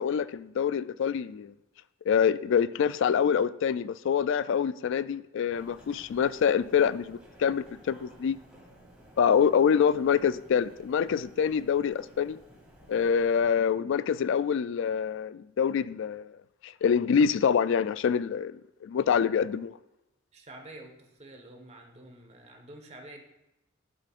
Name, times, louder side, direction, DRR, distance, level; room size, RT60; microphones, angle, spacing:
voice 1, 0.0-1.5 2.1-8.4 9.2-12.4 12.9-16.3 16.6-19.8, left 7 dB, 65° left, 0.3 m, -26 dB
sound 1, 5.5-13.5, equal, 5° right, 2.4 m, -55 dB
voice 2, 20.3-23.2, right 1 dB, 35° right, 1.3 m, -48 dB
11.5 x 7.6 x 2.5 m
head